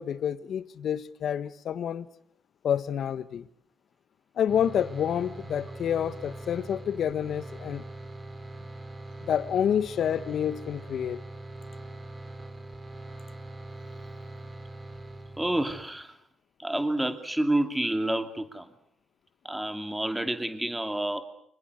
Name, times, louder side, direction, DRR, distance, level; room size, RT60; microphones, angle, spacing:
voice 1, 0.0-2.1 2.6-3.5 4.4-7.9 9.2-11.2, left 9 dB, 65° left, 1.6 m, -28 dB
sound 1, 4.5-15.8, right 2 dB, 25° right, 4.7 m, -42 dB
voice 2, 15.4-16.1 16.6-18.7 19.4-21.2, right 1 dB, 10° right, 2.5 m, -29 dB
27.5 x 26.0 x 6.7 m
cardioid pair, 90°, 0 cm